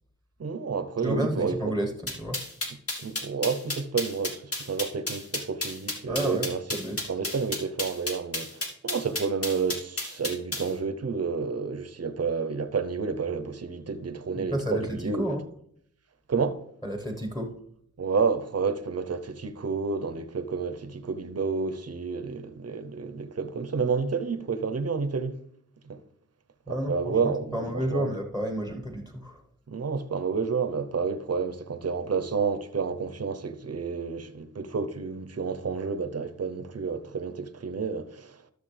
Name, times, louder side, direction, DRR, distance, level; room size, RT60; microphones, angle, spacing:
voice 1, 0.4-1.6 3.0-6.6 7.1-15.4 16.3-16.6 18.0-25.4 25.8-26.0 26.7-28.2 29.7-38.4, right 5 dB, 50° right, 0.8 m, -30 dB
voice 2, 1.0-2.4 6.1-7.1 14.4-15.4 16.8-17.5 26.7-29.4, equal, 10° left, 1.4 m, -31 dB
sound 1, 2.1-10.7, left 2 dB, 45° left, 2.1 m, -32 dB
12.5 x 6.5 x 3.4 m
wide cardioid pair, 70°, 32 cm